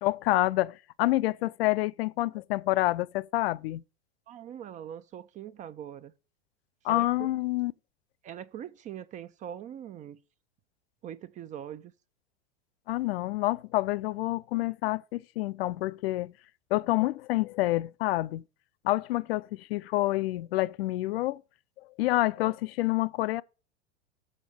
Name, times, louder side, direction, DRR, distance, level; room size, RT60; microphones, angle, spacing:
voice 1, 0.0-3.8 6.8-7.7 12.9-16.3 16.7-18.4 18.8-21.4 22.0-23.4, left 17 dB, 60° left, 0.5 m, -28 dB
voice 2, 4.3-6.1 6.9-7.3 8.2-10.2 11.0-11.9, right 10 dB, 25° right, 0.4 m, -42 dB
7.3 x 5.2 x 6.2 m
hypercardioid pair, 95°, 34 cm